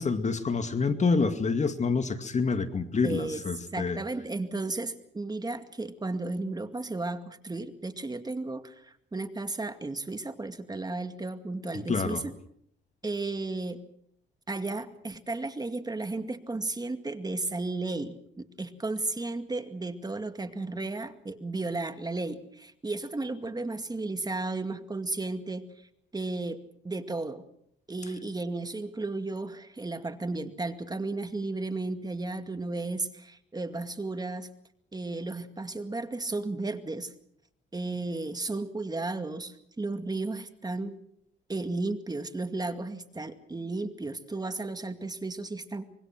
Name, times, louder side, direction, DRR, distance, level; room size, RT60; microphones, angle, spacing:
voice 1, 0.0-4.0 11.9-12.2, left 4 dB, 35° left, 8 dB, 2.3 m, -27 dB
voice 2, 3.0-3.4 3.7-12.3 13.0-13.8 14.5-25.9 26.1-27.4 27.9-34.5 34.9-37.1 37.7-41.0 41.5-45.9, right 2 dB, 20° right, 8 dB, 2.2 m, -34 dB
25.5 x 23.5 x 6.1 m, 0.70 s
cardioid pair, 90°, 20 cm